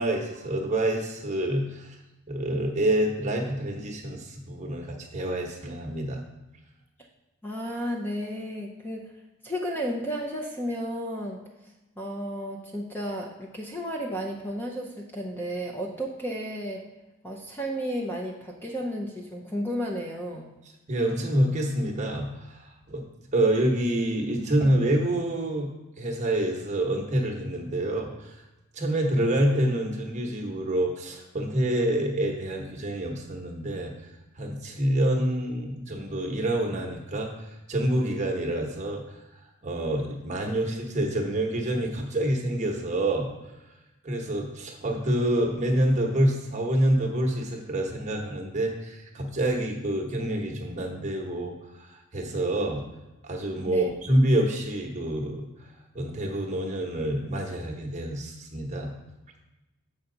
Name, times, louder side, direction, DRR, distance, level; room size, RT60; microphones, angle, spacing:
voice 1, 0.0-2.0 2.3-6.2 20.9-23.0 23.3-25.7 26.0-28.4 28.7-34.1 34.3-43.3 44.0-52.8 53.2-58.9, right 1 dB, 30° right, 0 dB, 1.0 m, -27 dB
voice 2, 7.4-9.1 9.4-11.4 12.0-16.8 17.2-20.5 53.7-53.9, equal, 10° left, 0 dB, 0.6 m, -33 dB
7.6 x 5.8 x 3.9 m, 1.0 s
head